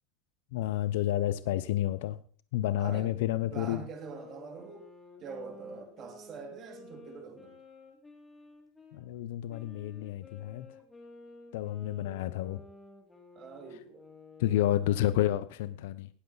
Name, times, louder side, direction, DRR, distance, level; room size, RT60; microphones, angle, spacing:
voice 1, 0.5-2.2 2.5-3.8 8.9-10.7 11.5-12.6 14.4-16.1, left 13 dB, 70° left, 15 dB, 0.7 m, -30 dB
voice 2, 2.6-3.1 3.5-4.8 5.2-7.6 13.3-14.0, right 5 dB, 30° right, 4 dB, 2.5 m, -44 dB
sound 1, 3.8-9.0 9.5-15.1, left 2 dB, 10° left, 2.4 m, -53 dB
18.5 x 7.9 x 4.1 m, 0.42 s
supercardioid pair, 170°, 0 cm